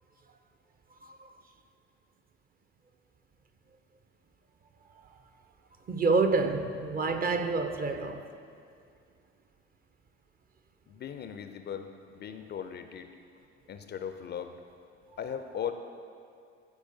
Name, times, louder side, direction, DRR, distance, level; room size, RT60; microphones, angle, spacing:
voice 1, 5.9-8.3, right 3 dB, 25° right, 0.5 m, -28 dB
voice 2, 10.9-13.1 13.7-14.5 15.2-15.7, left 8 dB, 35° left, 0.4 m, -38 dB
13.0 x 4.5 x 2.7 m
hypercardioid pair, 60°, 34 cm